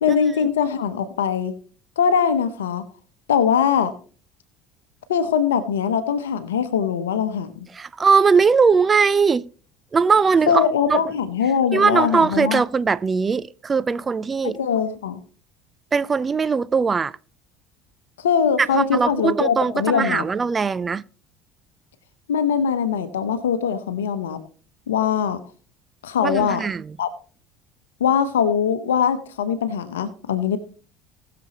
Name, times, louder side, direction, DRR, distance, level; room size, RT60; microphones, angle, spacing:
voice 1, 0.0-1.5 2.0-2.8 3.3-3.9 5.1-7.5 10.5-12.6 14.6-15.2 18.2-20.2 22.3-24.4 24.9-25.4 26.0-26.6 27.0-27.1 28.0-30.6, left 7 dB, 80° left, 0.8 m, -21 dB
voice 2, 7.7-9.5 9.9-11.0 11.7-14.6 15.9-17.2 18.6-21.0 26.2-27.0, right 5 dB, 30° right, 0.5 m, -20 dB
19.5 x 6.9 x 2.9 m
hypercardioid pair, 70°, 0 cm